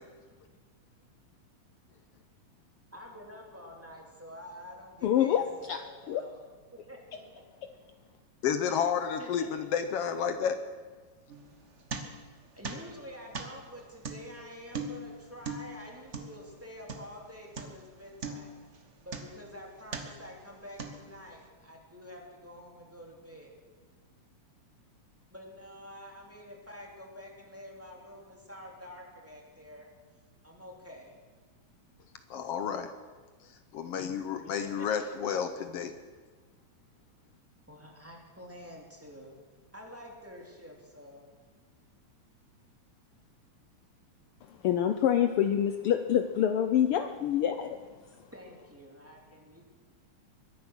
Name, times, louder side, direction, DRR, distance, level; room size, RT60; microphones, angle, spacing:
voice 1, 2.9-7.4 7.7-7.8 8.7-8.9 9.2-9.7 12.4-18.5 18.7-23.5 25.3-29.9 30.4-31.1 34.4-35.1 37.7-39.4 39.7-41.2 48.3-49.6, equal, 5° right, -1 dB, 2.3 m, -48 dB
voice 2, 5.0-5.8 6.1-6.2 44.6-47.8, left 10 dB, 85° left, 8 dB, 1.2 m, -26 dB
voice 3, 8.4-10.6 32.3-32.9 33.7-35.9, left 7 dB, 70° left, 9 dB, 1.6 m, -31 dB
sound 1, 11.3-12.4 12.6-17.2 17.6-17.9 18.2-19.5 19.9-20.3 20.8-21.3, right 3 dB, 55° right, 0.8 m, -40 dB
23.0 x 10.0 x 6.1 m, 1.4 s
omnidirectional pair, 3.3 m